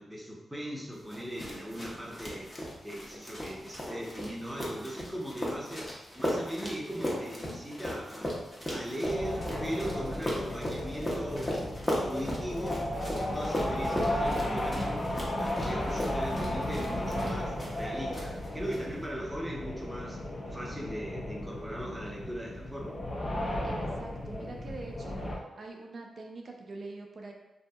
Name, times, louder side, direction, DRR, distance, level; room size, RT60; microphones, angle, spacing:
voice 1, 0.0-2.5 2.8-12.8 13.1-15.0 15.3-20.2 20.5-22.9, equal, 10° right, -4 dB, 0.8 m, -39 dB
sound 1, 1.1-17.9 18.1-18.8, equal, 25° left, 0.9 m, -37 dB
sound 2, 9.0-25.4, left 1 dB, 45° left, 0.6 m, -34 dB
voice 2, 23.6-25.2 25.6-27.3, right 3 dB, 55° right, 1 dB, 0.4 m, -44 dB
2.6 x 2.6 x 2.3 m, 1.0 s
supercardioid pair, 50°, 0 cm